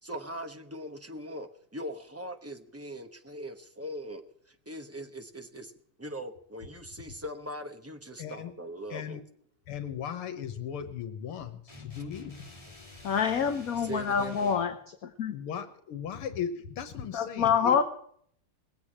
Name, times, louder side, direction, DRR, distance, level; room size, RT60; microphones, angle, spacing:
voice 1, 0.0-5.7 6.0-9.2 13.8-14.5, right 1 dB, 15° right, 7 dB, 0.4 m, -41 dB
voice 2, 8.2-8.5 8.9-9.2 9.7-12.3 15.3-17.8, left 8 dB, 80° left, 9 dB, 2.1 m, -37 dB
sound 1, 11.7-14.8, left 3 dB, 15° left, 3.1 m, -48 dB
voice 3, 13.0-14.8 15.2-15.3 17.1-17.8, left 7 dB, 50° left, 7 dB, 1.2 m, -26 dB
20.0 x 8.4 x 7.4 m, 0.62 s
omnidirectional pair, 2.4 m